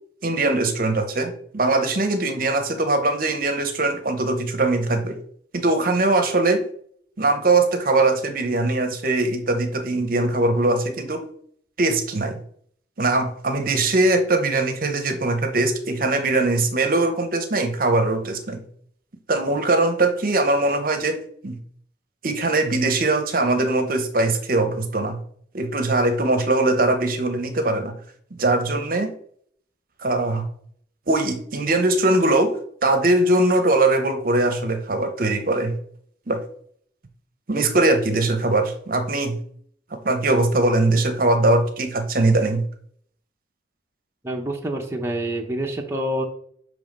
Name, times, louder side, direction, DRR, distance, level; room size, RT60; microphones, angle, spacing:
voice 1, 0.2-5.2 5.5-6.6 7.2-11.3 11.8-12.4 13.0-18.6 19.3-21.6 22.2-25.2 25.5-27.9 28.4-29.1 30.0-30.5 31.1-35.7 36.3-36.4 37.5-39.4 40.0-42.6, right 2 dB, 50° right, 6 dB, 0.8 m, -21 dB
voice 2, 44.2-46.2, right 1 dB, 15° right, 1 dB, 0.7 m, -27 dB
7.0 x 3.1 x 5.2 m, 0.62 s
head